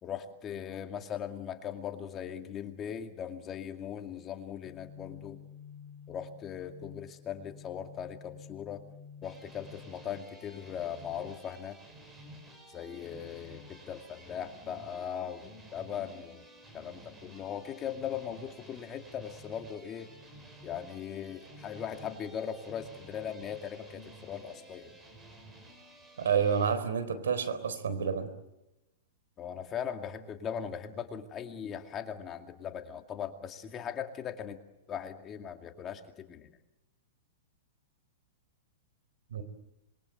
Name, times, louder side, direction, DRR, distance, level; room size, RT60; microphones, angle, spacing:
voice 1, 0.0-5.4 6.1-8.8 9.2-11.8 12.7-16.4 16.7-20.1 20.6-24.9 29.4-34.6 34.9-36.5, left 8 dB, 25° left, 5 dB, 2.3 m, -39 dB
sound 1, 4.7-10.2, left 7 dB, 60° left, 2.0 m, -50 dB
sound 2, 9.2-26.7, right 1 dB, 15° right, 6.0 m, -52 dB
voice 2, 26.2-28.3 39.3-39.4, right 7 dB, 85° right, 12 dB, 4.0 m, -29 dB
26.5 x 22.5 x 7.9 m, 0.96 s
hypercardioid pair, 135°, 0 cm